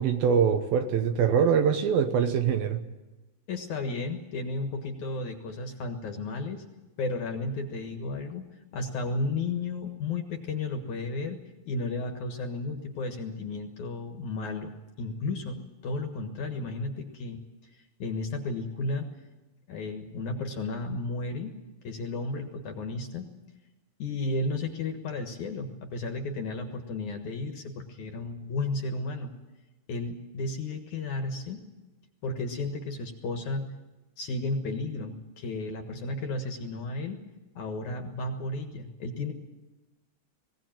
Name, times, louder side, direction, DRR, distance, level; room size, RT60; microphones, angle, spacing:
voice 1, 0.0-2.8, right 7 dB, 70° right, 8 dB, 2.6 m, -23 dB
voice 2, 3.5-6.6 7.0-11.4 11.7-14.7 15.0-17.4 17.7-19.1 19.7-21.5 21.8-23.3 24.0-29.3 29.9-31.6 32.2-33.7 34.2-37.2 37.6-39.3, left 3 dB, 55° left, 5 dB, 2.5 m, -33 dB
21.5 x 17.0 x 9.0 m, 1.1 s
omnidirectional pair, 4.8 m